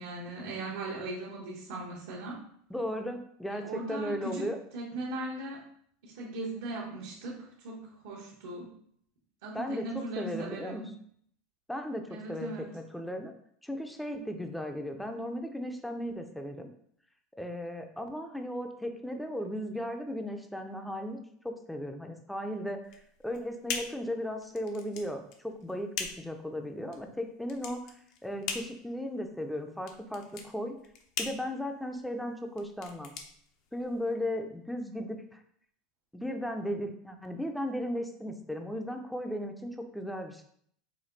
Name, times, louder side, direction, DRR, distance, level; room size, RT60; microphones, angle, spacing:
voice 1, 0.0-2.4 3.5-4.5 4.7-5.6 6.0-8.7 9.4-10.9 12.1-12.7, right 2 dB, 85° right, -4 dB, 1.2 m, -38 dB
voice 2, 2.7-4.6 9.5-10.9 11.7-13.3 13.6-16.7 17.4-21.2 21.4-22.8 23.2-25.9 26.2-27.9 28.2-30.7 31.2-33.1 33.7-35.4 36.1-40.4, equal, ahead, 5 dB, 0.5 m, -36 dB
sound 1, 22.8-34.1, left 6 dB, 60° left, 0.6 m, -41 dB
5.1 x 2.3 x 3.9 m, 0.65 s
supercardioid pair, 135°, 0 cm